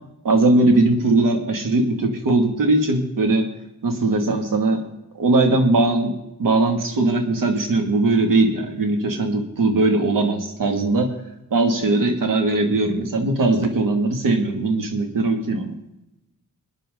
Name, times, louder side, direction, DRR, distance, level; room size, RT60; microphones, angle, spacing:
voice 1, 0.2-3.5 3.8-4.8 5.1-11.1 11.5-15.8, right 2 dB, 85° right, 4 dB, 2.4 m, -20 dB
24.0 x 9.9 x 3.9 m, 0.90 s
cardioid pair, 90°, 32 cm